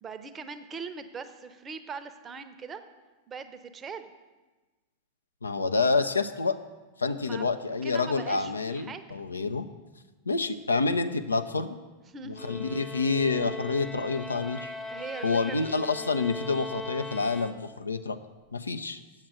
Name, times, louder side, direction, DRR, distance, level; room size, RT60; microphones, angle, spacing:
voice 1, 0.0-2.8 3.3-4.1 7.2-9.2 12.1-12.4 14.9-16.1, right 5 dB, 20° right, 10 dB, 0.6 m, -41 dB
voice 2, 5.4-6.6 7.0-9.7 10.3-11.8 12.2-14.7 15.2-18.2 18.5-19.0, left 4 dB, 75° left, 9 dB, 0.4 m, -28 dB
sound 1, 12.3-18.0, left 2 dB, 15° left, 0.8 m, -40 dB
7.7 x 7.3 x 6.2 m, 1.2 s
figure-of-eight pair, 90°, 0 cm